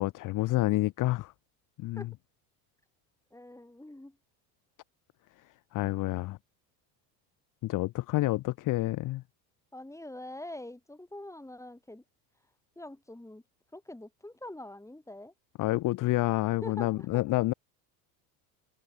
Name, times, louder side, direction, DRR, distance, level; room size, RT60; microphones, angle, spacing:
voice 1, 0.0-1.3 1.8-2.1 5.7-6.4 7.6-9.2 15.6-17.5, left 18 dB, 40° left, 0.5 m, -28 dB
voice 2, 3.3-4.2 9.7-12.0 12.8-13.4 13.7-15.3 16.6-17.1, left 1 dB, 5° left, 6.0 m, -44 dB
supercardioid pair, 95°, 50 cm